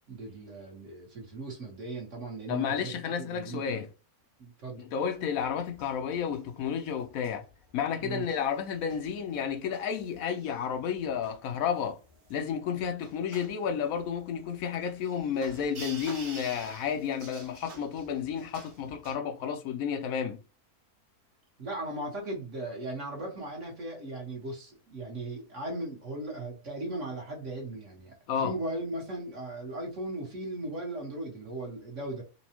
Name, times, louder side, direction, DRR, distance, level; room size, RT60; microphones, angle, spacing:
voice 1, 0.1-3.9 4.4-4.9 8.0-8.2 21.6-32.2, right 2 dB, 55° right, 1.6 m, -37 dB
voice 2, 2.5-3.9 4.8-7.4 7.7-12.0 12.3-20.4 28.3-28.5, left 7 dB, 75° left, 0.9 m, -31 dB
sound 1, 5.0-19.1, right 3 dB, 75° right, 1.7 m, -50 dB
4.0 x 2.3 x 2.8 m
omnidirectional pair, 1.6 m